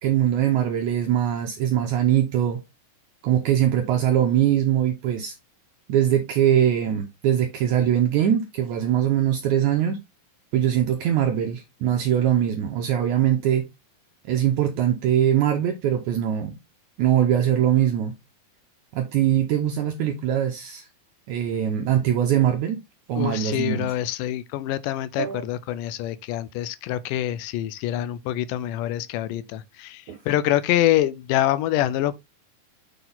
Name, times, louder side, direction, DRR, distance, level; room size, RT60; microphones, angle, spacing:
voice 1, 0.0-2.6 3.2-5.3 5.9-10.0 10.5-13.7 14.3-16.5 17.0-18.1 18.9-20.9 21.3-22.8 23.1-23.9 25.2-25.4 30.1-30.2, right 10 dB, 75° right, 1.8 m, -22 dB
voice 2, 23.2-32.1, left 13 dB, 80° left, 2.0 m, -25 dB
6.9 x 3.9 x 3.8 m
omnidirectional pair, 4.1 m